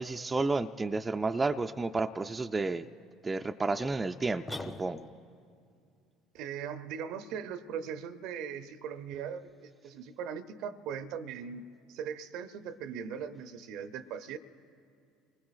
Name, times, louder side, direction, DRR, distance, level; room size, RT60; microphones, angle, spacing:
voice 1, 0.0-2.9 3.2-5.1, right 3 dB, 20° right, 7 dB, 0.4 m, -31 dB
sound 1, 4.5-5.4, left 2 dB, 15° left, 0.9 m, -41 dB
voice 2, 6.3-14.4, right 7 dB, 65° right, 12 dB, 0.6 m, -39 dB
26.5 x 20.0 x 2.4 m, 2.4 s
hypercardioid pair, 65°, 0 cm